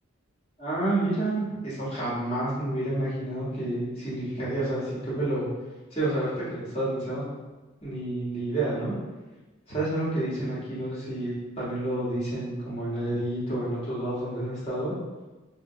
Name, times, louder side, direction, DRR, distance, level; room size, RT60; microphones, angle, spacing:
voice 1, 0.6-5.5 5.9-7.3 7.8-8.9 9.7-14.9, right 1 dB, 30° left, -9 dB, 0.9 m, -29 dB
4.3 x 2.1 x 2.6 m, 1.2 s
head